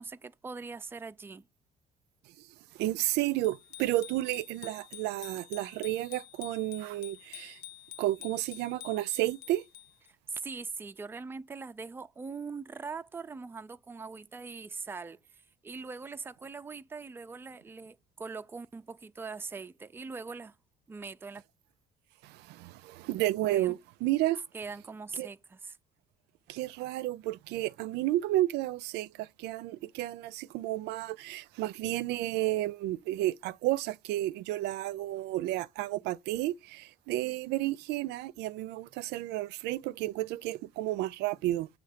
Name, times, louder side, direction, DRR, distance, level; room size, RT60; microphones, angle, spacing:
voice 1, 0.0-1.5 10.3-20.6 20.9-21.4 23.5-23.8 24.5-25.8, right 4 dB, 15° right, 0.4 m, -42 dB
voice 2, 2.7-7.6 8.0-9.7 22.2-24.4 25.2-25.3 26.5-41.7, right 16 dB, 90° right, 0.5 m, -32 dB
Bicycle bell, 3.4-10.1, left 14 dB, 75° left, 0.6 m, -49 dB
7.6 x 3.0 x 5.1 m
cardioid pair, 110°, 17 cm